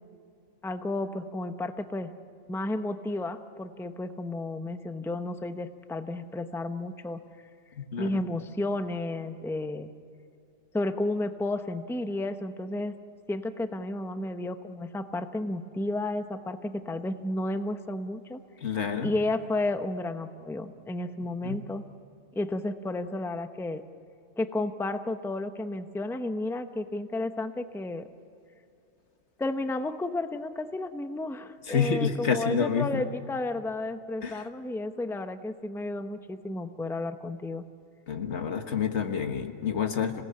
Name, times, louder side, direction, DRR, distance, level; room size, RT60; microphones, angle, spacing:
voice 1, 0.6-2.1 2.5-7.2 8.0-9.9 10.7-12.9 13.3-18.4 19.0-21.8 22.3-23.8 24.4-28.1 29.4-37.6, left 2 dB, 5° left, 9 dB, 0.7 m, -32 dB
voice 2, 7.7-8.2 18.6-19.1 21.4-21.6 31.7-33.0 34.2-34.5 38.1-40.2, left 6 dB, 85° left, 6 dB, 1.8 m, -28 dB
26.5 x 17.5 x 8.8 m, 2.6 s
omnidirectional pair, 1.1 m